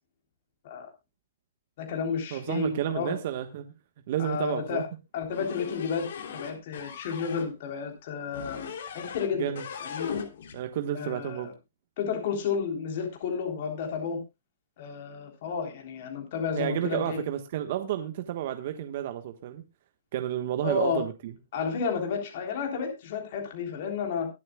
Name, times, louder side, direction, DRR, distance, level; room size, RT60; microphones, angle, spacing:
voice 1, 1.8-3.2 4.2-4.8 5.1-8.6 8.9-9.5 9.8-10.1 10.9-11.5 12.0-14.2 14.8-17.2 20.6-21.0 21.5-24.3, left 6 dB, 50° left, 3.5 m, -31 dB
voice 2, 2.3-3.7 4.1-4.8 9.3-9.6 10.5-11.5 16.5-19.6 20.1-21.3, right 11 dB, 50° right, 1.3 m, -31 dB
sound 1, 5.3-7.5 8.3-9.3 9.5-10.6, left 6 dB, 70° left, 3.1 m, -38 dB
23.0 x 7.7 x 2.3 m
hypercardioid pair, 145°, 0 cm